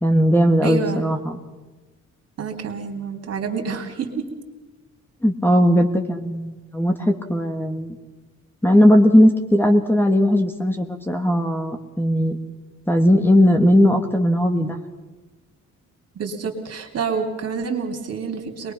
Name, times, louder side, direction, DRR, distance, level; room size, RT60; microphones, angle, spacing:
voice 1, 0.0-1.2 5.2-8.0 8.6-12.4 12.9-14.8, equal, 5° left, 5 dB, 1.7 m, -18 dB
voice 2, 0.6-1.0 2.4-4.3 16.1-18.7, right 5 dB, 55° right, 3 dB, 3.2 m, -28 dB
23.0 x 21.0 x 5.9 m, 1.2 s
cardioid pair, 90°, 30 cm